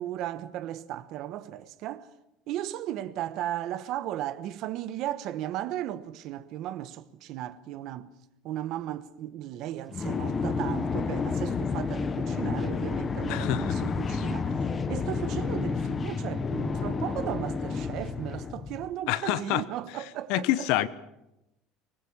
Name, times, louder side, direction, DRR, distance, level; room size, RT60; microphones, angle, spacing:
voice 1, 0.0-2.1 2.5-8.1 8.4-14.6 14.9-20.7, right 12 dB, 45° right, 1.1 m, -35 dB
sound 1, 9.9-18.9, left 5 dB, 20° left, 1.1 m, -30 dB
voice 2, 13.3-13.7 19.1-19.6 20.3-20.9, left 15 dB, 60° left, 1.0 m, -26 dB
24.5 x 20.0 x 7.3 m
cardioid pair, 180°, 0 cm